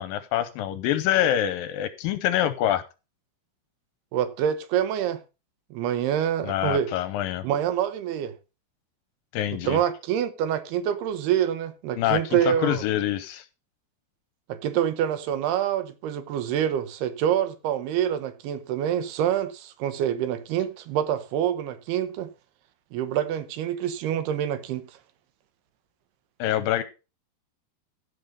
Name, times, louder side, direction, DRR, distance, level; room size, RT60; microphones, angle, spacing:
voice 1, 0.0-2.8 6.4-7.4 9.3-9.8 12.0-13.4 26.4-26.8, left 12 dB, 80° left, 2.2 m, -25 dB
voice 2, 4.1-5.2 5.7-6.9 7.4-8.3 9.6-12.8 14.5-22.3 22.9-24.9, right 10 dB, 90° right, 3.0 m, -26 dB
15.0 x 5.6 x 5.0 m
omnidirectional pair, 4.5 m